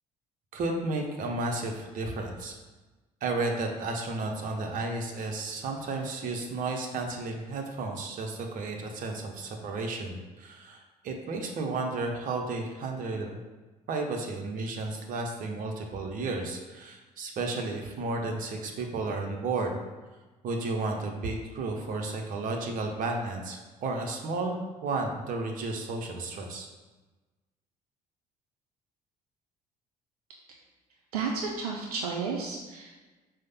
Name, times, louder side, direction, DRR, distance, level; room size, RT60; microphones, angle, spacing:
voice 1, 0.5-2.6 3.2-13.4 13.9-19.7 20.4-26.7, right 3 dB, 45° right, 2 dB, 0.7 m, -33 dB
voice 2, 31.1-33.0, right 5 dB, 75° right, 0 dB, 0.4 m, -32 dB
4.8 x 2.1 x 4.1 m, 1.2 s
figure-of-eight pair, 55°, 20 cm